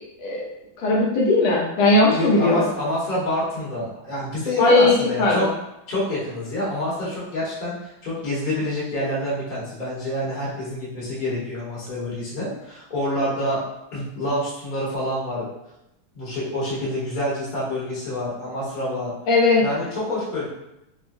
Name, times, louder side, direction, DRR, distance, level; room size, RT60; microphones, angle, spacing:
voice 1, 0.8-2.6 4.6-5.5 19.3-19.6, left 2 dB, 75° left, -4 dB, 1.6 m, -18 dB
voice 2, 2.1-5.5 5.9-13.6 13.9-15.5 16.1-19.1 19.6-20.4, left 1 dB, 30° left, -7 dB, 1.0 m, -27 dB
5.0 x 2.2 x 2.6 m, 0.87 s
omnidirectional pair, 2.3 m